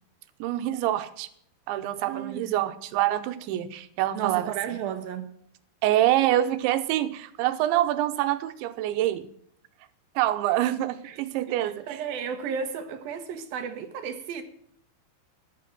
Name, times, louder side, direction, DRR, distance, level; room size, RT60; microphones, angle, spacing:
voice 1, 0.4-1.3 1.7-4.5 5.8-9.3 10.2-11.9, right 13 dB, 85° right, 3.3 m, -26 dB
voice 2, 2.0-2.7 4.1-5.3 11.0-11.2 11.6-14.4, right 7 dB, 65° right, 2.8 m, -33 dB
14.0 x 11.5 x 6.0 m
omnidirectional pair, 5.2 m